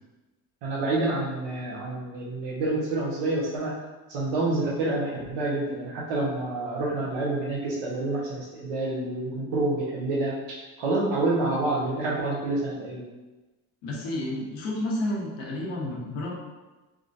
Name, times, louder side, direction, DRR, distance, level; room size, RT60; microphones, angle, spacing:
voice 1, 0.6-3.8 4.1-13.0, right 2 dB, 80° right, -4 dB, 1.1 m, -28 dB
voice 2, 13.8-16.3, left 1 dB, 85° left, -3 dB, 0.9 m, -30 dB
3.6 x 2.2 x 2.5 m, 1.2 s
cardioid pair, 95°, 41 cm